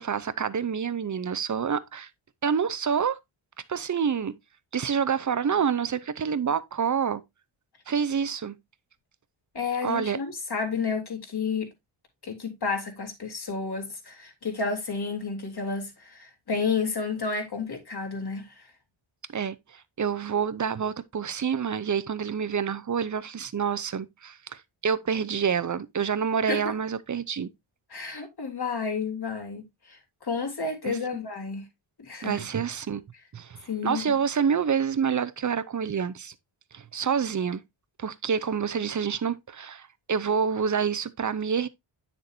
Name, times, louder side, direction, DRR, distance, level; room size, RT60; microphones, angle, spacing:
voice 1, 0.0-2.1 2.4-3.2 3.7-4.4 4.7-7.2 7.9-8.5 9.8-10.2 19.3-27.5 30.8-31.0 32.2-33.0 33.3-36.3 36.7-37.6 38.0-41.7, right 7 dB, 40° right, 0.6 m, -27 dB
voice 2, 9.5-11.7 12.2-18.6 26.5-26.7 27.9-31.7 32.0-32.4 33.7-34.1, left 5 dB, 50° left, 3.0 m, -31 dB
9.5 x 6.7 x 2.6 m
wide cardioid pair, 120°, 49 cm